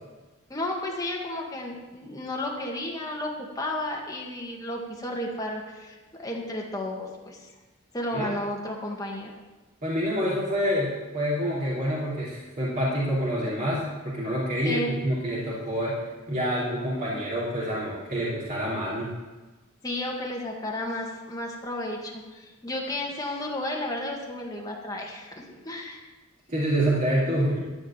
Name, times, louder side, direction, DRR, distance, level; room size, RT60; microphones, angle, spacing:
voice 1, 0.5-7.5 7.9-9.3 14.6-14.9 19.8-26.0, left 1 dB, 15° left, -1 dB, 1.9 m, -33 dB
voice 2, 9.8-19.1 26.5-27.6, equal, 40° right, -8 dB, 2.9 m, -27 dB
13.5 x 5.0 x 8.8 m, 1.2 s
head